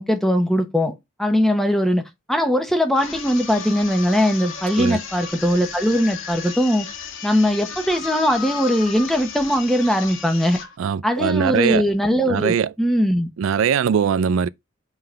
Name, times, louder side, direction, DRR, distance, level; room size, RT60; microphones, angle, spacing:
voice 1, 0.0-6.9 7.2-10.6 11.0-13.3, equal, ahead, 1.0 m, -20 dB
sound 1, 2.9-10.8, left 6 dB, 80° left, 1.5 m, -34 dB
voice 2, 10.8-11.9 12.3-12.7 13.4-14.5, right 7 dB, 90° right, 0.3 m, -21 dB
5.5 x 3.8 x 5.6 m
head